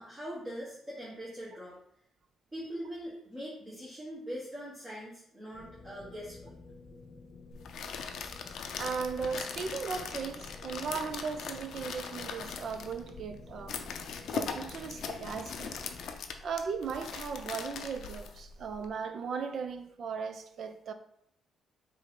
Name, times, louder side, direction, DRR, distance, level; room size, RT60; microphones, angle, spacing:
voice 1, 0.0-1.8 2.5-6.5, equal, 20° right, 1.2 m, -42 dB
sound 1, 5.5-16.1, left 3 dB, 40° left, 0.9 m, -52 dB
sound 2, 7.5-18.9, left 6 dB, 70° left, 0.5 m, -40 dB
voice 2, 8.8-13.8 14.3-15.8 16.1-20.9, right 5 dB, 60° right, 0.4 m, -37 dB
5.1 x 2.7 x 3.6 m
cardioid pair, 90°, 0 cm